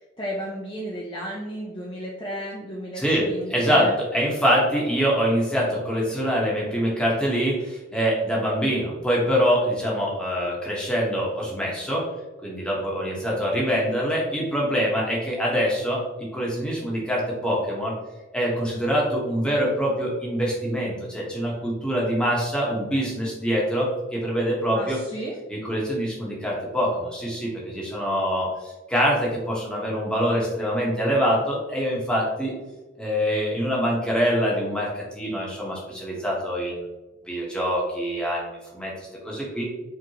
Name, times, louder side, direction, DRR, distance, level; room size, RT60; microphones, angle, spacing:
voice 1, 0.2-3.9 24.7-25.4, equal, 25° left, -4 dB, 0.5 m, -33 dB
voice 2, 2.9-12.0 12.4-16.0 16.3-17.9 18.3-25.0 25.5-32.5 33.0-36.9 37.2-39.6, equal, 5° left, -4 dB, 1.1 m, -24 dB
4.7 x 3.7 x 2.9 m, 1.1 s
head